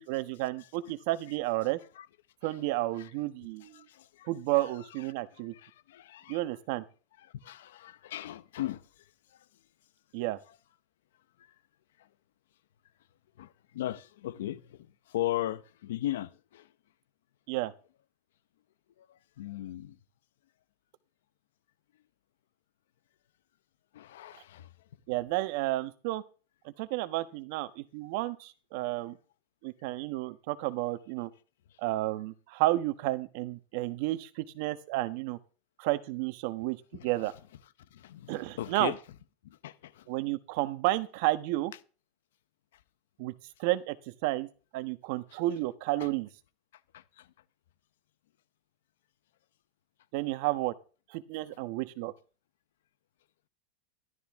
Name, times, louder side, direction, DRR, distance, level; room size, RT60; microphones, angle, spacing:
voice 1, 0.0-1.8 2.4-3.9 4.3-5.5 6.3-6.8 10.1-10.4 17.5-17.7 25.1-26.2 26.8-29.2 29.6-31.3 31.8-35.4 35.8-37.3 38.3-38.9 40.1-41.7 43.2-43.3 43.6-44.5 44.7-46.3 50.1-50.7 51.1-52.1, right 17 dB, 65° right, 1.2 m, -31 dB
voice 2, 3.6-4.3 5.5-6.4 7.2-9.0 9.3-9.4 11.4-11.5 12.0-12.1 13.4-16.7 19.0-20.0 23.9-24.7 36.9-37.3 37.9-39.0 39.4-40.1 46.0-46.1 46.9-47.3, left 13 dB, 85° left, 0.9 m, -38 dB
13.5 x 12.5 x 3.7 m
supercardioid pair, 125°, 0 cm